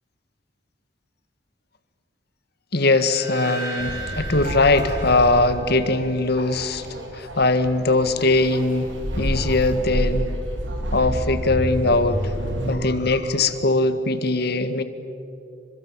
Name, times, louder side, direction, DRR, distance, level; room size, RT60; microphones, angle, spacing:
voice 1, 2.7-6.9 7.1-8.9 9.2-10.3 10.9-12.3 12.7-14.8, left 2 dB, 60° left, 11 dB, 1.7 m, -21 dB
sound 1, 2.9-6.1, right 3 dB, 20° right, 6.5 m, -36 dB
sound 2, 3.8-12.8, equal, 85° right, 3.6 m, -29 dB
30.0 x 26.0 x 7.5 m, 2.8 s
head